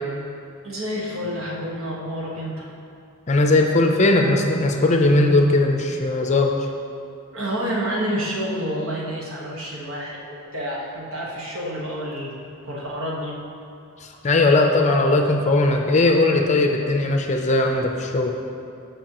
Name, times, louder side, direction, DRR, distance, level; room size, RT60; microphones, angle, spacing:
voice 1, 0.6-2.7 7.3-13.4, equal, 70° right, -3 dB, 1.5 m, -29 dB
voice 2, 3.3-6.5 14.0-18.3, left 2 dB, 30° left, 3 dB, 0.5 m, -19 dB
14.0 x 5.3 x 3.0 m, 2.5 s
head